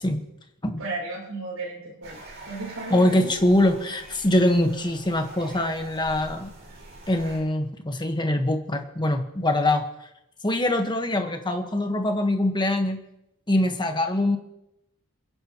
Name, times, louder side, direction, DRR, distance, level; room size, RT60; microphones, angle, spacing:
voice 1, 0.8-2.2 2.4-3.3, right 2 dB, 85° right, -2 dB, 6.5 m, -34 dB
sound 1, 2.0-7.4, right 2 dB, 55° right, 6.1 m, -44 dB
voice 2, 2.9-6.5 7.1-9.9 10.4-13.0 13.5-14.4, left 1 dB, 20° left, 4 dB, 1.4 m, -23 dB
29.0 x 9.7 x 3.1 m, 0.88 s
head